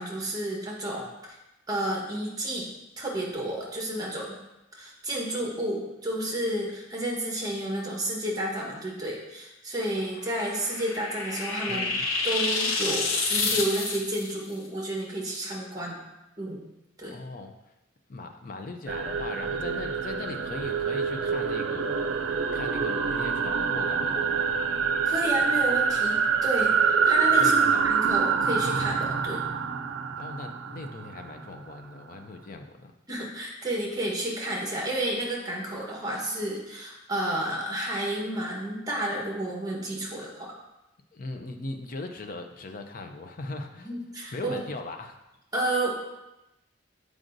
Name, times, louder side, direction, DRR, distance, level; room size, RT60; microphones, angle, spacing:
voice 1, 0.0-1.4 1.7-2.7 3.0-4.4 4.7-11.9 12.2-16.0 16.4-16.6 17.0-17.2 25.0-27.6 27.8-29.4 33.1-40.5 43.8-44.6 45.5-45.9, right 1 dB, 20° right, -2 dB, 1.1 m, -31 dB
sound 1, 10.2-14.3, left 3 dB, 80° left, 0.8 m, -29 dB
voice 2, 11.7-12.0 17.1-17.7 18.1-24.5 27.4-27.9 30.2-32.9 41.1-43.9 44.3-45.2, left 2 dB, 45° left, 5 dB, 0.5 m, -39 dB
sound 2, 18.9-31.6, right 6 dB, 70° right, 0.4 m, -26 dB
7.6 x 4.8 x 2.6 m, 0.94 s
head